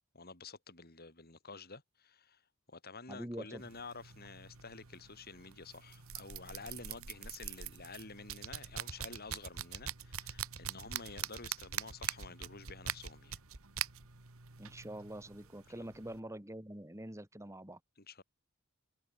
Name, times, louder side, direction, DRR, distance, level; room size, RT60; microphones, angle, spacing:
voice 1, 0.1-2.4 2.7-13.4 18.0-18.2, left 3 dB, 45° left, 5.0 m, -50 dB
voice 2, 3.1-3.6 14.6-17.8, right 1 dB, 15° right, 2.7 m, -45 dB
sound 1, 3.6-16.2, right 9 dB, 70° right, 1.8 m, -44 dB
head